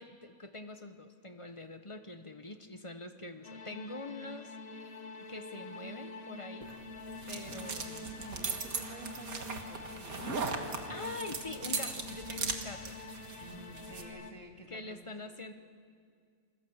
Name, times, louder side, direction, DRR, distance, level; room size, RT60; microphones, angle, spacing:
voice 1, 0.0-4.9 5.3-6.7 7.3-8.4 10.2-13.0 14.7-15.5, left 2 dB, 25° left, 8 dB, 0.9 m, -45 dB
sound 1, 3.4-14.3, left 3 dB, 45° left, 1.2 m, -46 dB
sound 2, 6.6-14.1, right 4 dB, 85° right, 2.2 m, -39 dB
voice 2, 7.5-10.4 13.4-15.2, right 3 dB, 60° right, 3 dB, 2.7 m, -51 dB
28.5 x 20.5 x 7.9 m, 2.2 s
omnidirectional pair, 1.5 m